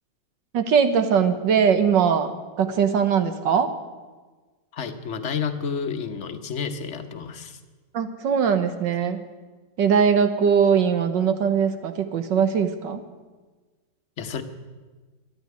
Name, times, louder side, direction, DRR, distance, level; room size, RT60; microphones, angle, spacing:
voice 1, 0.5-2.3 2.6-3.7 7.9-9.2 9.8-13.0, right 7 dB, 80° right, 9 dB, 1.8 m, -21 dB
voice 2, 4.7-7.6 14.2-14.4, left 6 dB, 45° left, 7 dB, 1.2 m, -30 dB
13.0 x 11.0 x 9.4 m, 1.3 s
omnidirectional pair, 2.0 m